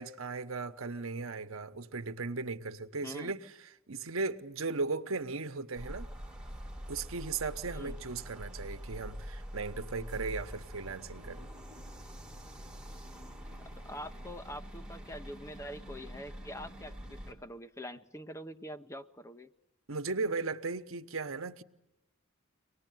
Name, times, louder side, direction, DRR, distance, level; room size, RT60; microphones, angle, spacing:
voice 1, 0.0-6.1 6.9-11.4 19.9-21.6, right 4 dB, 70° right, 1.1 m, -37 dB
voice 2, 3.0-3.4 7.7-8.0 13.7-19.5, equal, 15° left, 0.8 m, -45 dB
sound 1, 5.8-17.3, equal, 5° right, 3.7 m, -45 dB
24.5 x 19.5 x 9.3 m
head